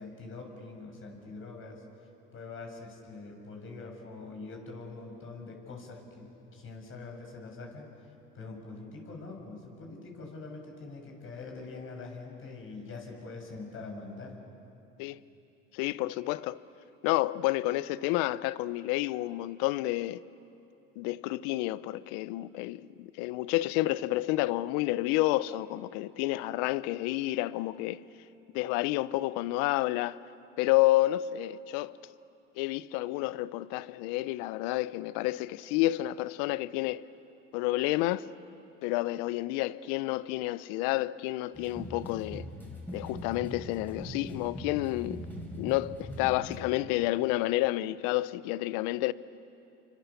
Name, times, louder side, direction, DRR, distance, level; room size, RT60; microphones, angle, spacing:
voice 1, 0.0-1.8 2.3-7.9 8.3-14.4, left 3 dB, 45° left, 6.9 m, -44 dB
voice 2, 15.7-16.6 17.0-20.2 21.0-28.0 28.5-30.2 30.6-31.9 32.6-37.0 37.5-38.3 38.8-42.5 42.9-45.2 45.6-49.1, left 17 dB, 75° left, 0.8 m, -30 dB
sound 1, 41.5-46.6, equal, 5° left, 6.2 m, -41 dB
29.5 x 25.0 x 7.0 m
supercardioid pair, 80°, 30 cm